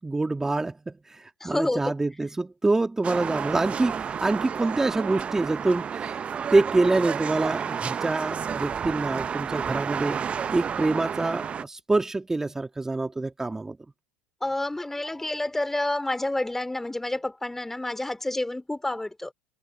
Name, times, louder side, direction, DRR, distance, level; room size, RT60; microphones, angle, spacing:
voice 1, 0.0-6.2 6.5-10.2 10.5-13.8, right 2 dB, 10° right, 2.0 m, -26 dB
voice 2, 1.4-1.9 14.4-19.3, left 1 dB, 5° left, 3.0 m, -29 dB
sound 1, 3.0-11.6, right 7 dB, 30° right, 0.9 m, -31 dB
hypercardioid pair, 80°, 4 cm